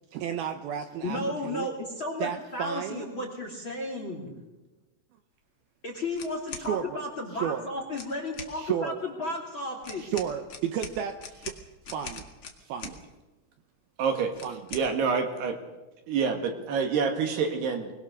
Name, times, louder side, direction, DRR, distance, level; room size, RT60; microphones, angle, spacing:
voice 1, 0.1-1.7 2.2-3.1 6.5-7.0 7.4-7.7 8.6-9.0 10.0-11.5 11.9-12.3 12.7-13.0 14.4-14.6, right 9 dB, 85° right, 7 dB, 2.2 m, -32 dB
voice 2, 1.0-4.4 5.8-10.1, left 2 dB, 35° left, 2 dB, 2.4 m, -34 dB
sound 1, 6.1-6.7 7.9-8.5 9.8-13.0 14.3-14.9, left 5 dB, 75° left, 1.2 m, -41 dB
voice 3, 14.0-14.3 14.7-15.6 16.1-17.9, right 5 dB, 60° right, 5 dB, 3.6 m, -27 dB
23.0 x 21.0 x 6.6 m, 1.1 s
omnidirectional pair, 5.7 m